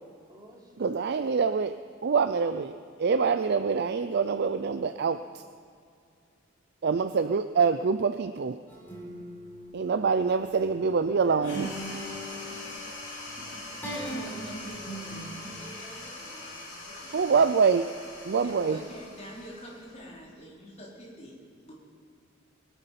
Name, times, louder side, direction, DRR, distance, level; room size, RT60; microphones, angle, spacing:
voice 1, 0.3-1.0 11.2-13.8 14.2-14.4, equal, 20° right, -3 dB, 3.2 m, -53 dB
voice 2, 0.8-1.8 2.0-5.4 6.8-8.6 9.7-11.7 17.1-17.9 18.2-18.8, right 5 dB, 55° right, 10 dB, 0.4 m, -25 dB
sound 1, 8.7-15.4, right 1 dB, 10° left, 3.9 m, -40 dB
sound 2, 11.4-20.3, left 2 dB, 60° left, 4.4 m, -42 dB
voice 3, 13.8-17.2 18.4-21.4 21.6-21.7, equal, 35° left, -5 dB, 4.2 m, -47 dB
23.0 x 9.1 x 5.9 m, 2.3 s
head